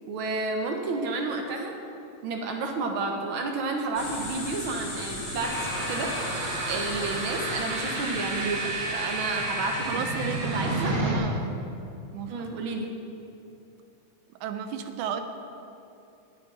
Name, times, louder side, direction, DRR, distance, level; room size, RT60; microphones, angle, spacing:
voice 1, 0.1-1.7 2.2-6.1 6.7-10.9 12.3-12.9, right 3 dB, 70° right, 2 dB, 1.2 m, -31 dB
sound 1, 4.0-10.9, left 1 dB, 85° left, 4.4 m, -39 dB
sound 2, 5.4-11.2, right 2 dB, 35° right, 0.7 m, -31 dB
voice 2, 9.9-11.5 12.1-12.5 14.4-15.2, right 8 dB, 85° right, 7 dB, 2.2 m, -34 dB
19.0 x 7.7 x 4.2 m, 2.7 s
omnidirectional pair, 3.4 m